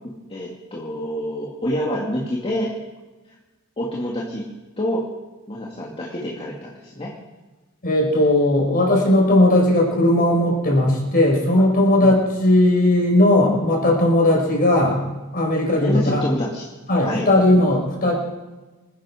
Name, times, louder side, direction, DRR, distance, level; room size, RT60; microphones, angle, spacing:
voice 1, 0.3-2.7 3.8-4.4 4.8-5.0 5.5-7.1 12.0-12.2 15.8-16.7 17.0-17.3, equal, 25° left, -4 dB, 2.2 m, -27 dB
voice 2, 7.8-15.0 15.3-16.2 16.9-18.1, left 1 dB, 40° left, -1 dB, 5.0 m, -17 dB
26.5 x 10.0 x 5.0 m, 1.2 s
head